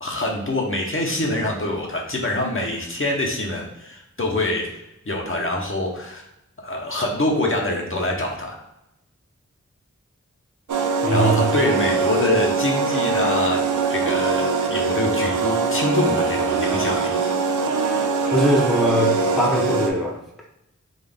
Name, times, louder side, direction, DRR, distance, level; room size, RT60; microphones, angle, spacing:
voice 1, 0.0-4.7 5.1-6.2 6.6-8.6 11.1-13.6 13.9-17.2, left 1 dB, 45° left, -1 dB, 0.8 m, -25 dB
sound 1, 10.7-19.9, right 4 dB, 85° right, 0.5 m, -22 dB
voice 2, 11.0-11.5 18.3-20.2, equal, ahead, -2 dB, 0.7 m, -21 dB
3.9 x 2.4 x 3.4 m, 0.86 s
wide cardioid pair, 45°, 30 cm